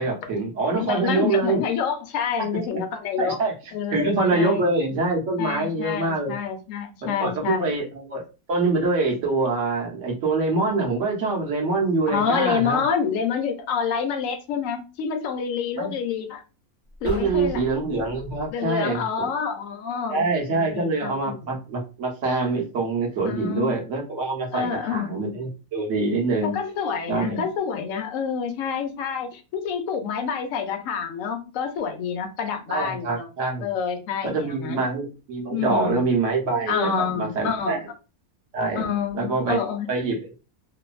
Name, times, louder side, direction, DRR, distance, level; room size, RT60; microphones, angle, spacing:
voice 1, 0.0-1.6 2.5-2.6 3.2-3.5 3.9-6.4 7.0-8.2 8.5-12.8 15.7-15.9 17.0-19.3 20.1-26.5 27.1-27.4 32.7-33.7 34.2-37.8 38.5-38.9 39.1-39.6 39.9-40.4, right 3 dB, 60° right, 1.1 m, -25 dB
voice 2, 0.8-3.4 3.7-4.6 5.4-7.8 12.1-16.4 17.0-17.6 18.5-21.6 23.3-23.8 24.5-25.1 26.4-33.3 33.6-34.8 35.5-36.0 36.7-37.8 38.8-39.9, left 7 dB, 70° left, 0.9 m, -28 dB
sound 1, 16.9-18.5, left 1 dB, 35° right, 0.7 m, -37 dB
2.9 x 2.2 x 2.3 m
omnidirectional pair, 1.5 m